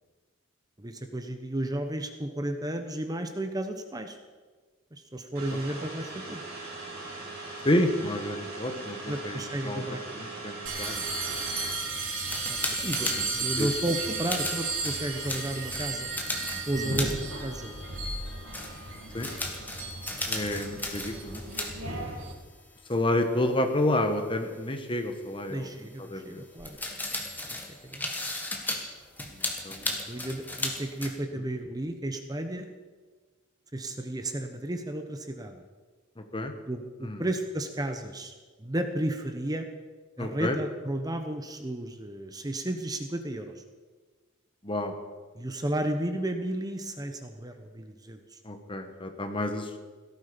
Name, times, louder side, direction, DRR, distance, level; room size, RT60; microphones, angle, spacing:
voice 1, 0.8-4.2 4.9-6.4 9.1-10.2 12.5-16.1 16.7-17.7 22.0-22.1 25.5-26.8 27.4-27.6 27.8-28.0 30.1-32.7 33.7-35.6 36.7-38.3 38.6-39.7 40.2-43.6 45.3-48.4, right 1 dB, 20° right, 7 dB, 1.0 m, -33 dB
sound 1, 5.3-11.7, right 2 dB, 50° right, 6.7 m, -40 dB
voice 2, 7.6-9.8 10.1-11.0 13.0-13.1 13.6-13.7 16.7-17.0 19.1-19.3 20.3-21.4 22.9-25.7 26.1-26.4 29.3-30.0 36.2-36.5 37.0-37.2 40.2-40.6 44.6-44.9 48.4-49.8, left 1 dB, 25° left, 6 dB, 1.4 m, -30 dB
sound 2, 10.7-22.3, right 3 dB, 85° right, 3.1 m, -34 dB
sound 3, 11.5-18.2 18.5-21.7 22.0-22.1 23.9-24.0 26.6-31.1, left 2 dB, 10° left, 1.9 m, -36 dB
17.0 x 14.0 x 5.2 m, 1.4 s
head